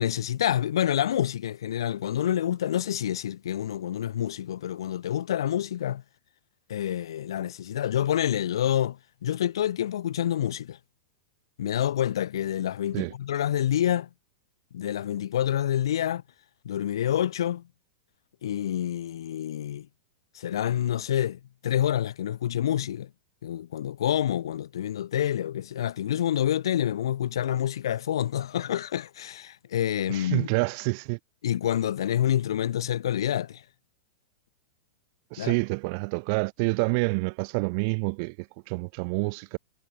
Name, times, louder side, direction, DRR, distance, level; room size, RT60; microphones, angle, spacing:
voice 1, 0.0-6.0 6.7-10.8 11.6-14.1 14.7-16.2 16.6-17.6 18.4-19.9 20.3-23.1 23.4-30.5 31.4-33.6 35.4-35.5, left 11 dB, 90° left, 6.6 m, -27 dB
voice 2, 30.1-31.2 35.3-38.3 38.7-39.6, right 34 dB, 35° right, 3.1 m, -27 dB
supercardioid pair, 180°, 2 cm